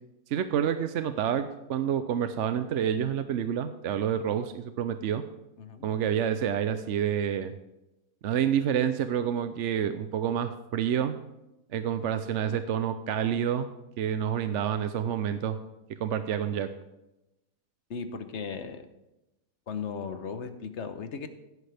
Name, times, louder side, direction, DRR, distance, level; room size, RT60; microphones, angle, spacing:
voice 1, 0.3-5.2 5.8-7.5 8.2-11.1 11.7-13.7 14.0-15.6 16.0-16.7, right 9 dB, 65° right, 10 dB, 0.9 m, -28 dB
voice 2, 17.9-18.9 19.7-21.3, left 6 dB, 55° left, 9 dB, 1.2 m, -36 dB
15.5 x 9.5 x 3.4 m, 0.95 s
omnidirectional pair, 1.5 m